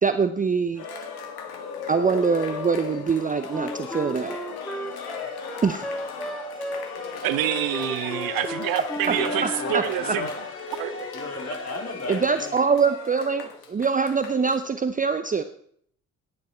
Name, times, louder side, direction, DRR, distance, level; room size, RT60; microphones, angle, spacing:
voice 1, 0.0-0.8 1.9-4.4 5.6-5.9 9.1-9.2 9.4-10.2 12.1-15.4, right 5 dB, 20° right, 10 dB, 0.7 m, -24 dB
Cheering, 0.7-14.6, left 5 dB, 60° left, 1.8 m, -36 dB
Wind instrument woodwind instrument, 3.5-9.8, right 1 dB, ahead, 1.1 m, -34 dB
sound 1, 4.4-12.9, left 1 dB, 85° left, 3.0 m, -44 dB
voice 2, 7.2-10.3 10.7-11.0, right 13 dB, 55° right, 14 dB, 0.7 m, -27 dB
voice 3, 9.1-10.4 11.1-12.6, left 3 dB, 35° left, 2 dB, 3.2 m, -33 dB
15.0 x 10.5 x 4.5 m, 0.63 s
figure-of-eight pair, 45°, 43 cm